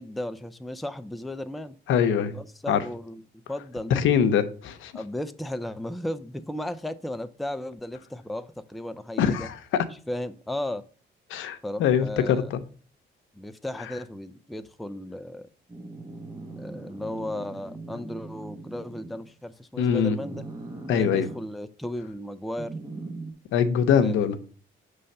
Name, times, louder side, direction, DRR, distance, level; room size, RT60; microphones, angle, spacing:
voice 1, 0.0-1.8 2.3-3.2 3.5-4.0 4.9-9.5 10.1-10.8 11.6-12.5 13.3-15.5 16.6-20.4 20.9-22.7 24.0-24.3, left 1 dB, ahead, 0.4 m, -35 dB
voice 2, 1.9-2.4 2.7-2.8 3.9-4.9 9.2-9.8 11.3-12.6 19.8-20.2 20.9-21.3 23.5-24.4, left 8 dB, 80° left, 0.6 m, -23 dB
sound 1, 15.7-19.3 20.2-21.4 22.6-23.3, right 2 dB, 20° right, 0.8 m, -40 dB
5.5 x 3.3 x 5.3 m
cardioid pair, 90°, 20 cm